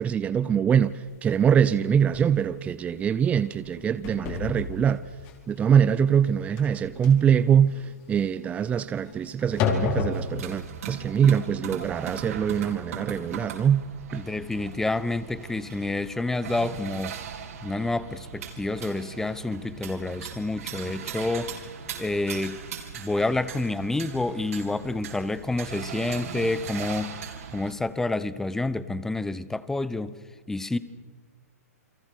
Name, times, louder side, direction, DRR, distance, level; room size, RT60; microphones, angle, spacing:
voice 1, 0.0-5.0 5.5-13.8 14.1-14.2, right 8 dB, 15° right, 0.6 m, -23 dB
sound 1, 1.1-1.2 1.6-1.7 2.1-2.4 2.8-3.1 3.4-10.6, left 5 dB, 35° left, 4.6 m, -32 dB
sound 2, 10.1-27.7, right 7 dB, 65° right, 4.3 m, -39 dB
voice 2, 14.1-17.2 17.6-21.5 22.0-22.6 23.0-27.2 27.5-30.2 30.5-30.8, left 2 dB, 5° left, 1.0 m, -28 dB
29.0 x 23.5 x 6.6 m
hypercardioid pair, 130°, 9 cm